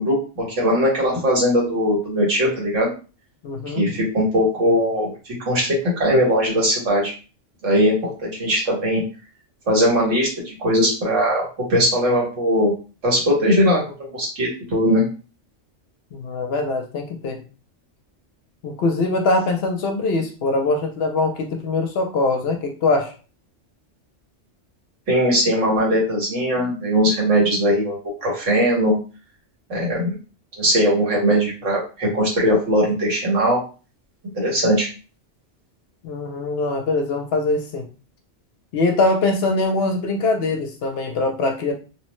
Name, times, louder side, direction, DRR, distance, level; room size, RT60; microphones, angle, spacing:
voice 1, 0.0-2.9 3.7-5.1 5.5-7.1 7.6-8.0 8.2-9.0 9.7-12.7 13.0-15.0 25.1-28.9 29.7-30.1 30.6-33.6 34.3-34.9, equal, 85° right, -3 dB, 1.6 m, -20 dB
voice 2, 3.4-3.9 16.1-17.4 18.6-23.1 36.0-37.9 38.7-41.7, left 3 dB, 65° left, 3 dB, 0.7 m, -22 dB
2.9 x 2.1 x 3.0 m, 0.34 s
omnidirectional pair, 1.2 m